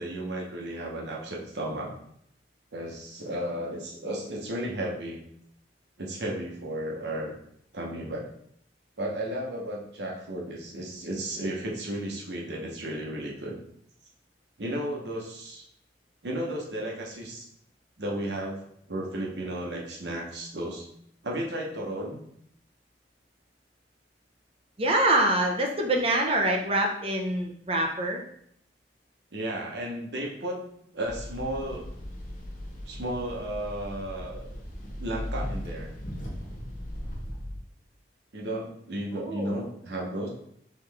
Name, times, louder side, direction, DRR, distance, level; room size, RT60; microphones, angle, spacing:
voice 1, 0.0-1.9 2.7-5.2 6.0-7.3 7.7-8.3 9.0-13.6 14.6-15.6 16.2-17.5 18.0-18.6 18.9-20.8 21.2-22.2 29.3-30.6 30.9-31.8 32.9-34.5 35.0-35.9 38.3-40.3, right 1 dB, 70° right, -2 dB, 1.0 m, -33 dB
voice 2, 24.8-28.2 39.1-39.6, right 1 dB, 30° right, 2 dB, 0.6 m, -25 dB
sound 1, 31.0-37.6, left 1 dB, 45° left, 0.8 m, -38 dB
3.9 x 3.1 x 3.4 m, 0.70 s
head